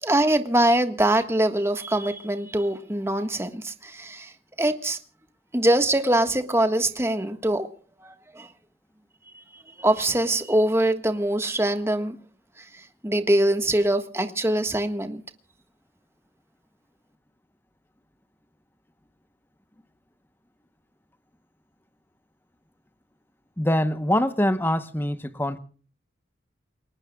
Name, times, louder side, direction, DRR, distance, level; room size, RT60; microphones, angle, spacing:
voice 1, 0.0-4.3 4.6-5.0 5.5-7.7 8.0-8.5 9.5-12.2 12.6-15.2, right 1 dB, 15° right, 1.5 m, -23 dB
voice 2, 23.6-25.6, left 1 dB, 10° left, 0.9 m, -24 dB
29.0 x 21.0 x 2.3 m
head